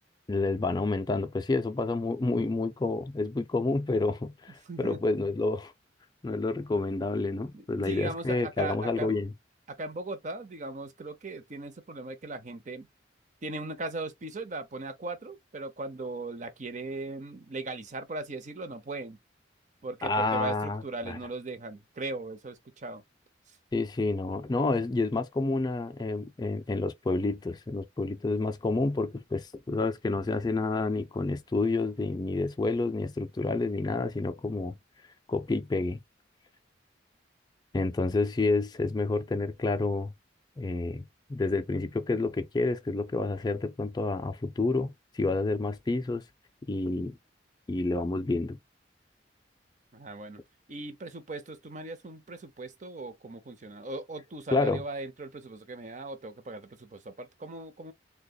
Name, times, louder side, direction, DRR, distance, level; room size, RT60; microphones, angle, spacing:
voice 1, 0.3-5.7 6.2-9.3 20.0-21.2 23.7-34.8 35.3-36.0 37.7-40.1 40.6-46.2 46.6-47.2 47.7-48.6 54.5-54.8, left 3 dB, 20° left, 0.4 m, -29 dB
voice 2, 4.7-5.0 7.5-9.2 9.7-12.9 13.4-19.2 19.8-23.0 49.9-50.4 50.7-57.9, right 2 dB, 40° right, 0.7 m, -38 dB
6.5 x 2.3 x 2.3 m
head